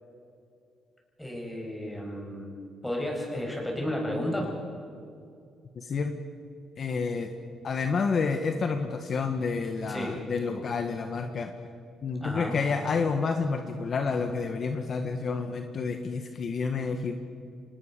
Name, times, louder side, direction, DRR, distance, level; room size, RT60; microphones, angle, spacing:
voice 1, 1.2-4.5 9.9-10.2 12.2-12.6, left 1 dB, 10° left, 0 dB, 7.4 m, -33 dB
voice 2, 5.7-6.2 6.8-7.3 7.6-11.5 12.0-17.2, left 4 dB, 50° left, 6 dB, 1.5 m, -29 dB
25.5 x 19.5 x 6.9 m, 2.5 s
cardioid pair, 90°, 0 cm